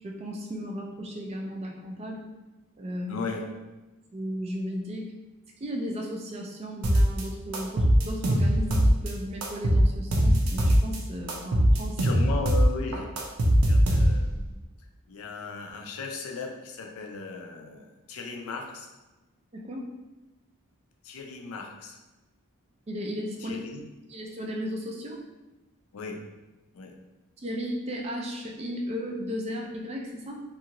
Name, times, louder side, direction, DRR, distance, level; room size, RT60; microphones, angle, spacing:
voice 1, 0.0-2.3 2.8-3.1 4.1-5.0 5.6-12.0 19.5-19.8 22.9-23.6 24.1-25.2 27.4-30.4, equal, 30° right, 0 dB, 0.3 m, -35 dB
voice 2, 3.1-3.5 12.0-14.5 15.1-18.9 21.0-22.0 23.4-23.8 25.9-26.2 26.7-27.0, left 4 dB, 70° left, 2 dB, 0.4 m, -37 dB
sound 1, 6.8-7.2 7.5-9.1 9.4-11.0 11.3-14.4, equal, 90° right, 0.5 m, -21 dB
2.6 x 2.4 x 2.9 m, 1.1 s
head